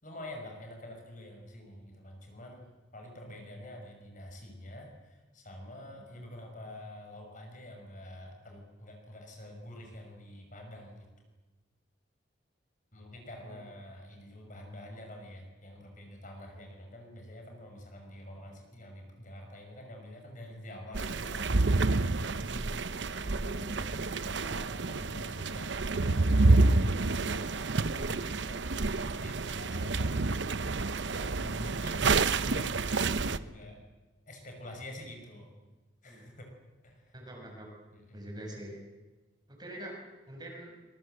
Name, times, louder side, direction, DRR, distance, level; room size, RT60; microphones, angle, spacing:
voice 1, 0.0-2.7 2.9-11.1 12.9-21.6 23.1-28.7 29.1-30.4 30.7-33.8 34.3-35.5 36.0-36.5 36.8-37.1 37.9-38.2, left 1 dB, 40° left, 3 dB, 5.8 m, -47 dB
sound 1, 20.9-33.4, right 3 dB, 70° right, 0.8 m, -28 dB
voice 2, 22.0-22.8 36.0-36.2 37.1-37.7 38.1-38.8 39.6-39.9 40.2-40.7, right 1 dB, 20° right, 1 dB, 6.6 m, -44 dB
25.5 x 22.5 x 7.9 m, 1.2 s
head